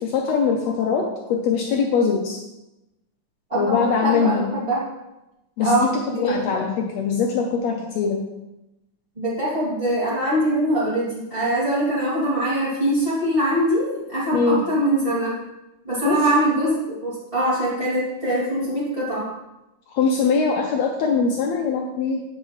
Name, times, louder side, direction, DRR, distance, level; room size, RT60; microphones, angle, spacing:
voice 1, 0.0-2.4 3.5-4.5 5.6-5.9 6.2-8.3 14.3-14.6 16.0-16.2 19.9-22.2, left 5 dB, 85° left, 1 dB, 1.5 m, -22 dB
voice 2, 3.5-4.9 5.6-6.5 9.2-15.4 15.8-19.3, right 1 dB, 10° right, -11 dB, 2.1 m, -23 dB
8.5 x 6.0 x 3.2 m, 0.95 s
omnidirectional pair, 3.8 m